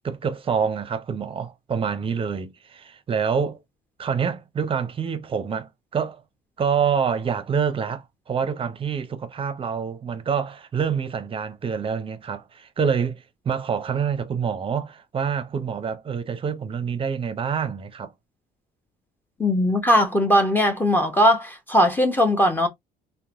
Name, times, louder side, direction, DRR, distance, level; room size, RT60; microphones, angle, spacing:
voice 1, 0.0-3.6 4.0-6.2 6.6-18.1, right 6 dB, 30° right, 0.6 m, -26 dB
voice 2, 19.4-22.7, equal, 10° left, 0.7 m, -19 dB
3.0 x 2.1 x 2.4 m
cardioid pair, 110°, 17 cm